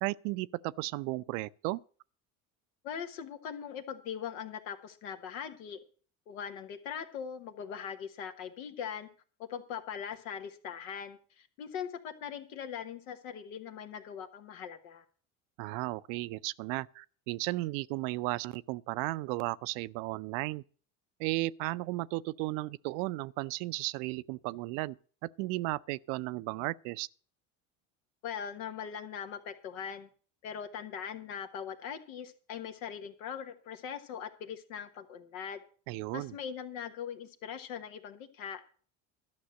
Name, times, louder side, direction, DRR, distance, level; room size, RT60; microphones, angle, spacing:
voice 1, 0.0-1.8 15.6-20.6 21.2-25.0 25.2-27.1 35.9-36.4, right 20 dB, 70° right, 0.5 m, -34 dB
voice 2, 2.8-5.8 6.3-9.1 9.4-15.0 28.2-30.1 30.4-35.6 36.1-38.6, left 8 dB, 85° left, 1.4 m, -41 dB
12.0 x 6.1 x 7.6 m
supercardioid pair, 85°, 41 cm